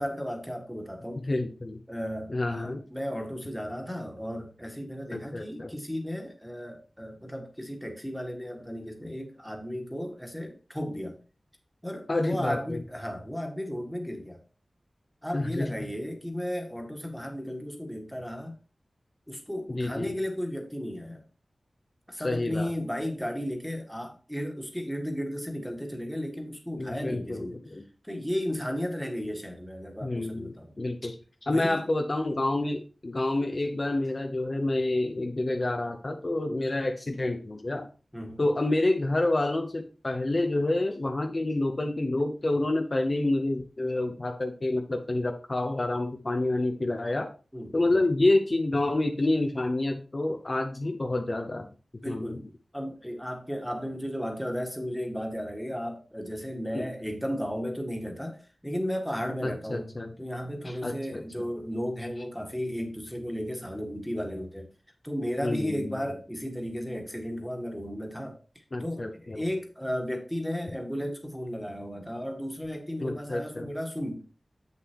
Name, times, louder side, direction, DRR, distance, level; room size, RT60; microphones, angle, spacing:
voice 1, 0.0-1.2 1.9-11.2 11.8-14.4 15.2-18.6 19.3-21.2 22.1-27.6 28.0-30.7 31.5-31.8 38.1-38.4 47.5-47.7 52.0-52.5 52.7-59.9 60.2-64.7 65.0-74.2, equal, ahead, 1.8 m, -34 dB
voice 2, 1.2-1.8 2.3-2.8 5.1-5.7 12.1-12.8 15.3-15.7 19.7-20.1 22.2-22.7 26.8-27.8 30.0-31.2 31.4-37.9 38.4-47.3 47.7-51.7 52.0-52.5 56.7-56.9 59.4-60.1 60.6-61.2 65.4-66.1 68.7-69.4 73.0-73.7, left 2 dB, 45° left, 0.9 m, -28 dB
7.5 x 6.7 x 3.0 m
wide cardioid pair, 70°, 0 cm